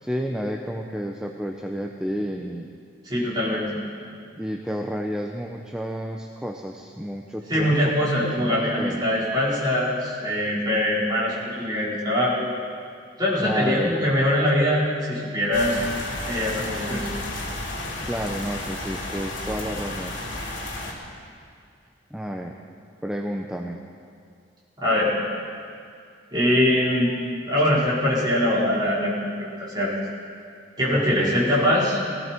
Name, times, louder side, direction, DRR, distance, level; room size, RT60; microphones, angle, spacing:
voice 1, 0.0-2.7 4.4-7.7 8.0-9.0 13.4-13.9 16.9-17.1 18.0-20.2 22.1-22.5 23.0-23.8 30.9-31.4, equal, 5° right, 1 dB, 0.7 m, -31 dB
voice 2, 3.0-3.7 7.5-12.5 13.2-15.8 16.2-17.1 24.8-25.1 26.3-27.1 27.5-29.5 29.7-29.9 30.8-32.0, left 1 dB, 25° right, -8 dB, 4.7 m, -22 dB
sound 1, 15.5-20.9, left 2 dB, 80° left, 3.4 m, -32 dB
18.0 x 17.5 x 4.5 m, 2.3 s
head